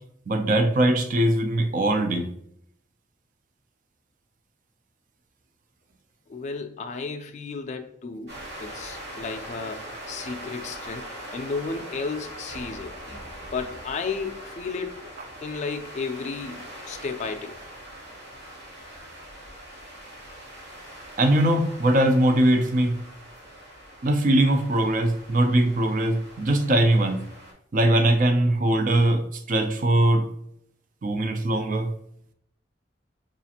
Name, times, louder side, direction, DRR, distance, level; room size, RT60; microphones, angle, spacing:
voice 1, 0.3-2.3 21.2-23.0 24.0-27.2 27.7-30.2 31.0-31.9, right 1 dB, 45° right, 6 dB, 0.4 m, -21 dB
voice 2, 6.3-11.1 11.3-13.2 13.5-15.1 15.4-17.5, left 4 dB, 40° left, 6 dB, 0.3 m, -33 dB
sound 1, 8.3-27.5, equal, 70° right, 1.4 m, -42 dB
4.9 x 2.4 x 2.8 m, 0.71 s
head